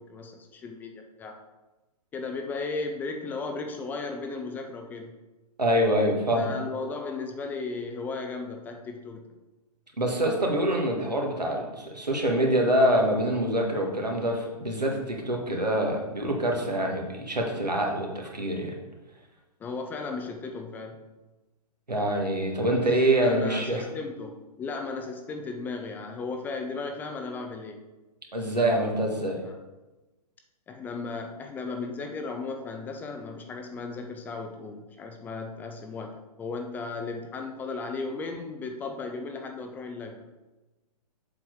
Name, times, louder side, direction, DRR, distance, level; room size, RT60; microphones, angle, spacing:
voice 1, 0.0-1.4 2.1-5.1 6.3-9.3 19.6-21.1 22.7-22.8 23.2-27.8 29.4-29.6 30.7-40.4, left 4 dB, 10° left, 4 dB, 0.4 m, -35 dB
voice 2, 5.6-6.5 10.0-18.8 21.9-23.8 28.3-29.4, right 1 dB, 90° right, 0 dB, 1.8 m, -25 dB
7.3 x 4.5 x 4.7 m, 1.1 s
figure-of-eight pair, 125°, 20 cm